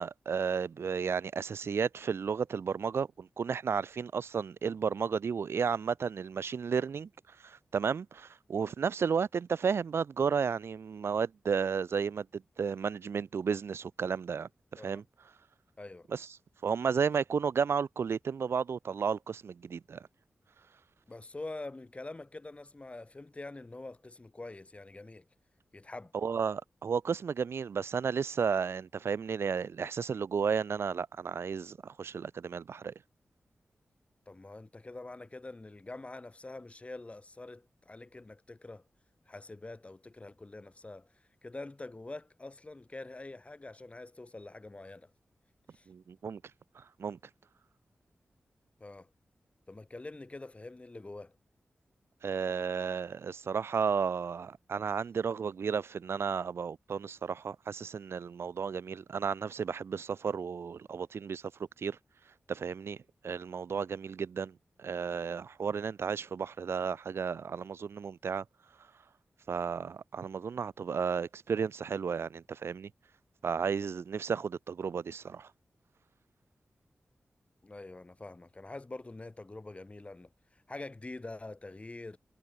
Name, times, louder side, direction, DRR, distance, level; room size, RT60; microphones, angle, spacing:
voice 1, 0.0-7.1 7.4-15.0 16.1-16.3 16.6-20.1 26.1-32.9 45.9-46.4 46.7-47.2 52.2-61.4 61.8-62.0 62.5-63.0 63.2-68.4 69.5-72.9 73.4-75.5, right 6 dB, 80° right, 1.3 m, -33 dB
voice 2, 15.8-16.1 21.1-25.2 25.7-26.1 34.3-38.8 39.3-45.1 45.7-45.9 48.8-49.1 49.7-51.4 77.6-82.2, left 2 dB, 30° left, 5.1 m, -45 dB
wide cardioid pair, 75°, 4 cm